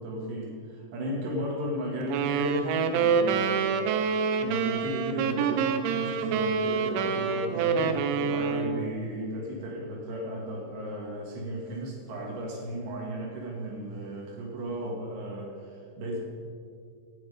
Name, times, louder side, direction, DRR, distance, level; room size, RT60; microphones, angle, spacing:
voice 1, 0.0-16.2, equal, 65° right, -2 dB, 4.2 m, -35 dB
sound 1, 2.1-8.9, right 6 dB, 85° right, 3.3 m, -27 dB
18.5 x 9.5 x 5.1 m, 2.3 s
omnidirectional pair, 5.5 m